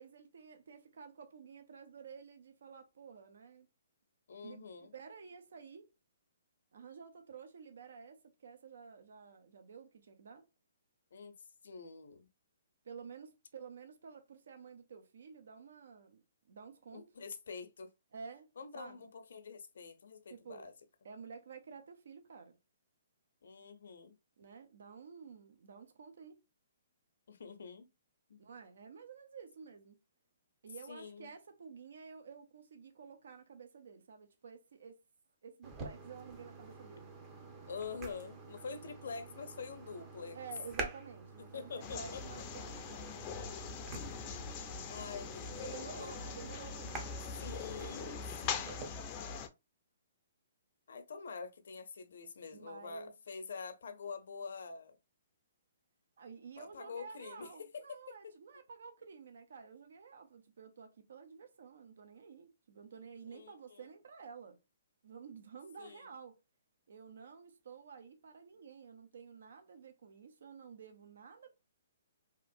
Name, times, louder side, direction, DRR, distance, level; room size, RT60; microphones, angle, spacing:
voice 1, 0.0-3.7 4.4-5.9 6.7-10.5 12.8-16.2 16.5-17.1 18.1-19.0 20.3-20.7 21.0-22.6 24.4-26.4 28.4-30.0 30.6-35.0 35.4-37.1 40.3-43.1 45.6-48.2 52.5-53.1 56.2-64.6 65.0-66.4 66.9-71.5, right 6 dB, 70° right, 0.6 m, -52 dB
voice 2, 4.3-4.9 11.1-11.3 11.6-12.3 16.9-17.9 18.6-20.7 23.4-24.1 27.3-27.9 28.3-28.4 30.9-31.3 37.7-40.4 41.5-42.2 43.8-44.6 44.9-46.2 47.4-49.0 50.9-55.0 56.6-58.3 63.3-63.8 65.8-66.0, left 5 dB, 75° left, 0.6 m, -46 dB
sound 1, 35.6-48.9, right 3 dB, 25° right, 0.7 m, -48 dB
sound 2, 41.8-49.5, left 6 dB, 30° left, 0.4 m, -42 dB
2.9 x 2.4 x 2.5 m
hypercardioid pair, 145°, 0 cm